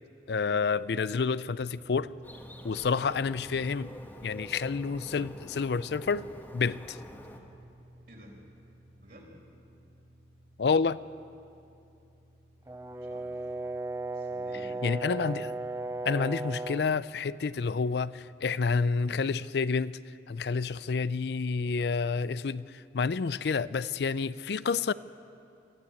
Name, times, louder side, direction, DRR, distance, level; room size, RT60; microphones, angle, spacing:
voice 1, 0.3-2.1 2.6-3.9 4.2-6.3 6.5-7.0 10.6-11.0 14.8-15.5 16.0-20.0 20.3-24.9, left 5 dB, 70° left, 0.4 m, -29 dB
sound 1, 1.4-19.0, right 1 dB, 85° right, 6.9 m, -56 dB
Bird, 2.2-7.4, equal, 10° left, 1.6 m, -47 dB
voice 2, 8.1-8.4 9.0-9.4 12.6-13.5 14.1-14.9, equal, 55° right, 4.6 m, -53 dB
Brass instrument, 12.7-16.9, right 2 dB, 15° right, 0.5 m, -36 dB
25.0 x 15.0 x 8.7 m
head